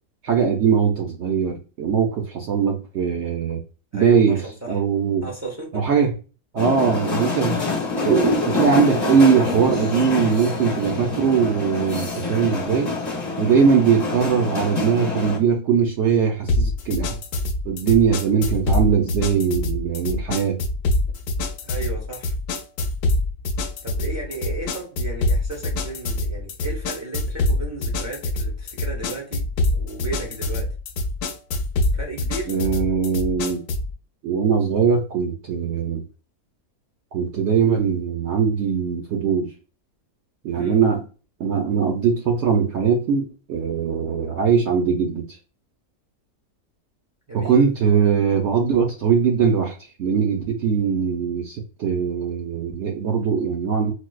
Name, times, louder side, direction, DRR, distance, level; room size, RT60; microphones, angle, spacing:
voice 1, 0.2-3.6 3.9-5.3 5.7-6.1 6.5-7.6 8.0-12.9 13.4-17.2 17.6-20.6 32.5-33.6 34.2-36.0 37.1-39.5 40.4-41.1 41.4-45.4 47.3-53.9, right 6 dB, 65° right, 0.7 m, -21 dB
voice 2, 3.9-4.8 5.2-5.8 21.6-22.3 23.8-29.4 29.7-30.7 31.9-32.5 40.5-40.8 47.3-47.6, right 3 dB, 25° right, 0.3 m, -34 dB
sound 1, 6.6-15.4, left 3 dB, 30° left, 1.0 m, -26 dB
sound 2, 16.5-33.9, left 2 dB, 85° left, 1.1 m, -25 dB
4.4 x 2.1 x 2.2 m
omnidirectional pair, 1.6 m